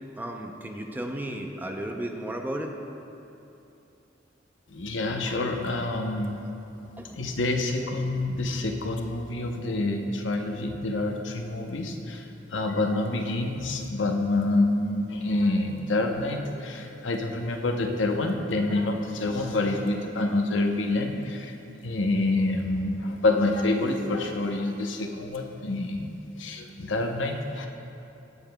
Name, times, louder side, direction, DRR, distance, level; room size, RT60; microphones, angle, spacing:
voice 1, 0.2-2.7 7.0-7.4 9.7-9.8, right 1 dB, 10° right, 3 dB, 0.5 m, -34 dB
voice 2, 4.7-6.4 7.1-12.3 12.5-21.5 21.8-27.7, left 2 dB, 80° left, 3 dB, 0.7 m, -27 dB
17.0 x 7.0 x 2.2 m, 2.8 s
head